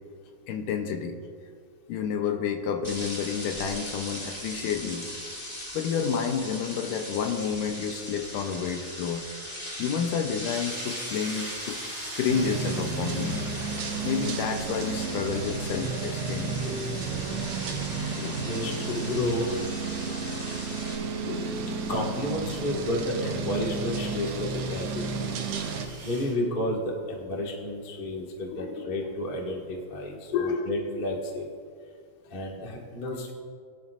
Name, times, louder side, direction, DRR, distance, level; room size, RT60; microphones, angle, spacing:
voice 1, 0.5-1.2 1.9-5.1 5.7-9.3 9.8-11.8 12.2-13.5 14.0-16.8 18.2-18.4 20.1-20.2 20.5-20.6 21.1-21.8 22.7-22.8 28.0-28.2 28.5-28.9 30.3-30.7, left 6 dB, 75° left, 5 dB, 2.1 m, -30 dB
sound 1, 2.8-21.0, equal, 25° left, 0.8 m, -39 dB
sound 2, 10.5-26.4, right 2 dB, 20° right, 2.6 m, -47 dB
sound 3, 12.3-25.9, right 4 dB, 75° right, 1.4 m, -32 dB
voice 2, 18.3-19.4 19.9-20.3 21.9-25.1 26.0-31.5 32.3-33.3, left 1 dB, 60° left, -2 dB, 0.5 m, -31 dB
21.5 x 10.5 x 2.5 m, 2.2 s
omnidirectional pair, 4.1 m